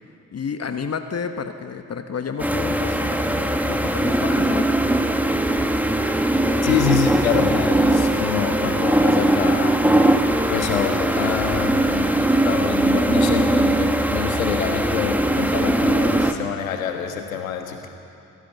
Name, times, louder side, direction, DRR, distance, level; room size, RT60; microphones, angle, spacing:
voice 1, 0.3-4.8, left 6 dB, 40° left, 7 dB, 1.4 m, -31 dB
sound 1, 2.4-16.3, right 1 dB, 5° right, 1.8 m, -20 dB
voice 2, 6.6-9.8 10.5-17.9, left 8 dB, 80° left, 5 dB, 1.6 m, -26 dB
28.0 x 17.0 x 6.9 m, 2.8 s
figure-of-eight pair, 40°, 40 cm